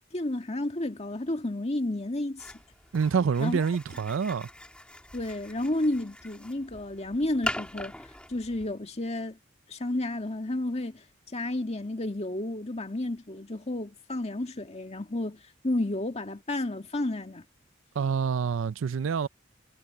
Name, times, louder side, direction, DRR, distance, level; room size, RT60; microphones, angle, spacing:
voice 1, 0.1-2.5 3.4-3.6 5.1-7.9 8.3-9.4 9.7-11.0 11.3-17.4, left 1 dB, 35° left, 1.9 m, -31 dB
sound 1, 2.4-8.7, left 1 dB, 5° left, 2.1 m, -41 dB
voice 2, 2.9-4.5 18.0-19.3, right 6 dB, 90° right, 0.4 m, -27 dB
head